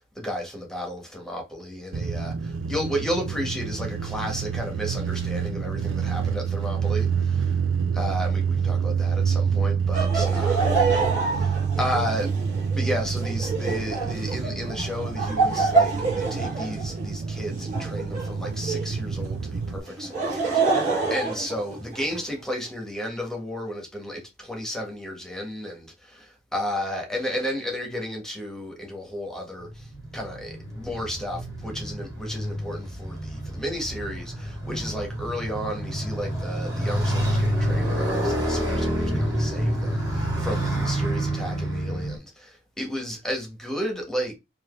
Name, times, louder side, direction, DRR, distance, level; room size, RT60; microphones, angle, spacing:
voice 1, 0.1-7.6 7.9-11.0 11.4-12.4 12.7-44.3, equal, 5° left, 1.3 m, -33 dB
sound 1, 1.9-19.8, right 6 dB, 90° right, 0.4 m, -27 dB
Laughter, 9.9-19.0 19.9-22.2, right 4 dB, 40° right, 2.3 m, -27 dB
Motorcycle, 29.6-42.2, right 1 dB, 20° right, 2.6 m, -28 dB
4.7 x 2.7 x 3.1 m
head